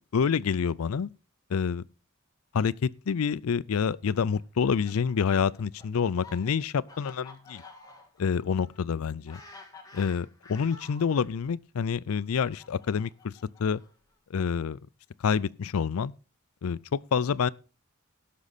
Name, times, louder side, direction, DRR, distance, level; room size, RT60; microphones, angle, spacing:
voice 1, 0.1-1.1 1.5-1.8 2.5-7.6 8.2-9.4 9.9-13.3 13.6-13.8 14.3-14.8 15.2-16.1 16.6-17.5, left 6 dB, 90° left, 0.4 m, -27 dB
Fowl, 4.4-11.3 12.1-14.1, left 3 dB, 15° left, 1.8 m, -51 dB
17.0 x 6.2 x 4.1 m
head